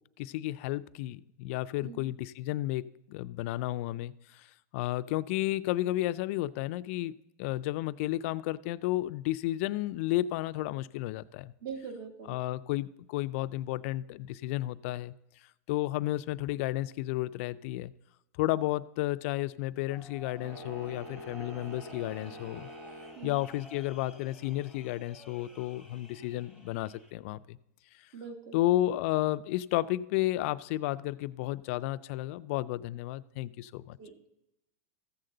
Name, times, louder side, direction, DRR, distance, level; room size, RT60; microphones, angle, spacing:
voice 1, 0.2-4.5 4.7-7.1 7.4-11.5 12.3-15.1 15.7-17.9 18.4-22.7 23.2-27.6 28.5-34.0, left 16 dB, 50° left, 15 dB, 0.3 m, -32 dB
voice 2, 11.6-12.4 23.1-23.4 28.1-28.6 34.0-34.2, right 6 dB, 50° right, 6 dB, 1.5 m, -42 dB
sound 1, 19.9-27.1, equal, 5° right, 1.0 m, -53 dB
sound 2, 20.4-23.2, equal, 80° right, 1.8 m, -46 dB
14.0 x 7.8 x 3.8 m, 0.86 s
supercardioid pair, 150°, 9 cm